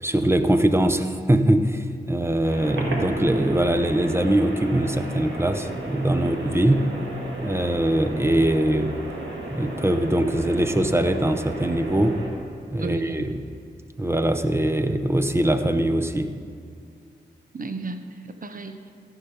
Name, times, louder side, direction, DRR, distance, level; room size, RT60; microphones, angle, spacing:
voice 1, 0.0-6.9 7.4-9.0 9.5-12.2 12.7-13.4 14.0-16.3, right 1 dB, 15° right, 7 dB, 0.7 m, -22 dB
sound 1, 2.5-12.3, right 1 dB, 75° right, 1.9 m, -34 dB
voice 2, 12.8-13.4 17.5-18.9, right 3 dB, 45° right, 8 dB, 0.9 m, -34 dB
14.5 x 5.6 x 5.1 m, 2.2 s
cardioid pair, 45°, 19 cm